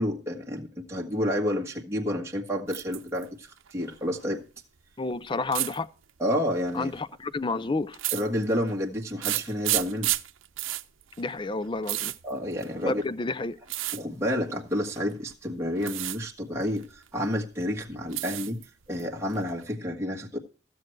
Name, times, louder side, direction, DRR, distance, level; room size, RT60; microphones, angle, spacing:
voice 1, 0.0-4.4 6.2-6.9 8.1-10.1 12.2-13.0 13.9-18.6 18.9-20.4, equal, 15° right, 1.7 m, -30 dB
sound 1, 2.7-3.2 3.6-4.2 5.5-5.8 6.7-7.0 7.9-8.7 9.2-13.0 13.7-14.0 14.9-15.4 15.8-16.2 16.5-17.3 17.7-18.7 19.0-19.7, right 16 dB, 90° right, 0.7 m, -32 dB
voice 2, 5.0-5.9 6.7-8.0 11.2-12.1 12.8-13.6, left 3 dB, 25° left, 0.4 m, -30 dB
15.5 x 7.7 x 4.6 m
head